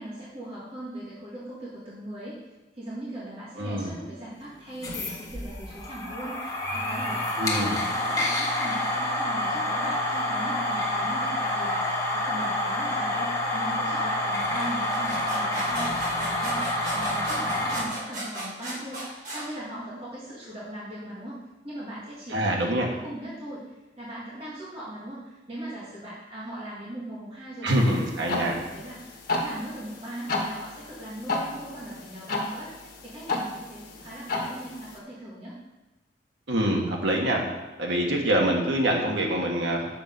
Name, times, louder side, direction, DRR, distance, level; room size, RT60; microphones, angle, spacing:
voice 1, 0.0-2.4 2.7-11.8 12.1-35.5, right 1 dB, 30° right, -8 dB, 2.0 m, -39 dB
voice 2, 3.6-4.0 7.4-7.8 22.3-22.9 27.6-28.6 36.5-37.4 37.8-39.9, right 1 dB, 80° right, -1 dB, 1.5 m, -25 dB
sound 1, 4.7-17.8, left 1 dB, 20° left, 1.6 m, -28 dB
sound 2, 14.6-19.5, right 1 dB, 50° right, 3.4 m, -35 dB
sound 3, 27.7-35.0, left 2 dB, 50° left, 1.5 m, -33 dB
7.8 x 6.7 x 5.3 m, 1.1 s
head